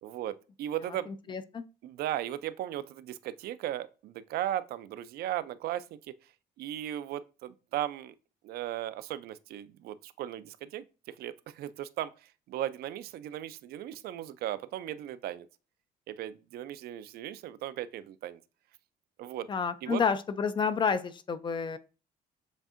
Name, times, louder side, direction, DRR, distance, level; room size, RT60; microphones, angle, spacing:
voice 1, 0.0-1.4 1.8-6.1 6.6-8.1 8.4-15.5 16.1-18.4 19.2-19.5 19.8-20.0, right 12 dB, 65° right, 0.4 m, -37 dB
voice 2, 1.1-1.6 19.5-21.8, left 6 dB, 30° left, 0.3 m, -30 dB
7.2 x 2.6 x 2.5 m
cardioid pair, 110°, 17 cm